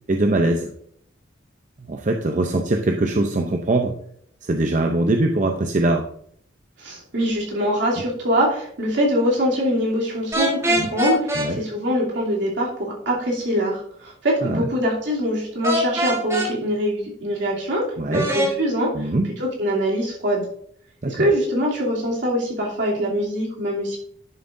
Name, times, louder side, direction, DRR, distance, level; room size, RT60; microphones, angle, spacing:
voice 1, 0.1-0.7 1.9-3.9 4.4-6.1 10.8-10.9 11.4-11.6 14.5-14.7 18.0-18.3 18.9-19.3 21.0-21.3, right 2 dB, 40° right, 4 dB, 0.6 m, -22 dB
voice 2, 6.8-19.1 19.4-20.5 21.0-24.0, equal, 65° right, -3 dB, 2.9 m, -23 dB
sound 1, 10.3-11.5 15.6-16.5 18.1-18.5, equal, 15° right, 1.4 m, -22 dB
10.5 x 7.3 x 2.6 m, 0.65 s
head